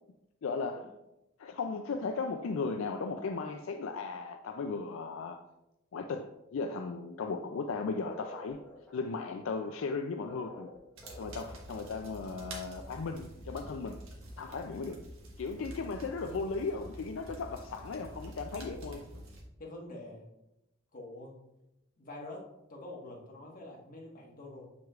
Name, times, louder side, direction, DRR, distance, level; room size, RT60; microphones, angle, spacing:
voice 1, 0.4-0.9 1.4-5.4 5.9-8.6 8.9-10.7 11.2-14.0 14.4-15.0 15.4-19.0, left 4 dB, 70° left, 5 dB, 0.4 m, -36 dB
sound 1, 8.0-11.7, left 1 dB, 10° left, 1.2 m, -49 dB
sound 2, 11.0-19.4, right 1 dB, 80° right, 1.4 m, -47 dB
voice 2, 19.6-20.2 20.9-21.3 22.0-22.4 22.7-24.7, left 2 dB, 40° left, -3 dB, 1.4 m, -46 dB
7.2 x 6.1 x 2.4 m, 0.90 s
head